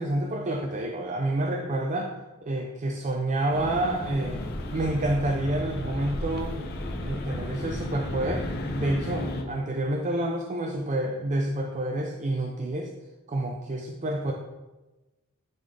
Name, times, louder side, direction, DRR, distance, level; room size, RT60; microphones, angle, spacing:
voice 1, 0.0-2.1 2.4-4.4 4.7-6.5 7.0-8.5 8.7-12.9 13.3-14.3, right 1 dB, 35° right, 2 dB, 0.5 m, -28 dB
sound 1, 3.5-9.4, left 1 dB, 45° left, 0.8 m, -33 dB
10.5 x 4.0 x 3.4 m, 1.1 s
head